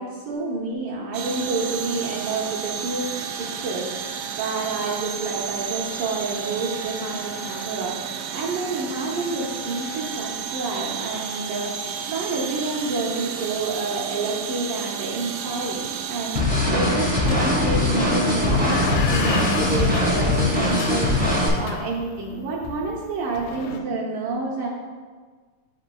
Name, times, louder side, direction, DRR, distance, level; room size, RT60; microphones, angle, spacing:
voice 1, 0.0-3.1 3.4-21.1 21.6-24.7, right 3 dB, 75° right, -4 dB, 2.3 m, -29 dB
sound 1, 1.1-16.4, right 7 dB, 90° right, 2.4 m, -32 dB
sound 2, 15.8-15.9 16.1-16.6 17.3-23.8, left 4 dB, 85° left, 1.8 m, -31 dB
sound 3, 16.3-21.5, left 1 dB, 35° right, 0.6 m, -21 dB
11.5 x 4.5 x 2.3 m, 1.5 s
omnidirectional pair, 4.1 m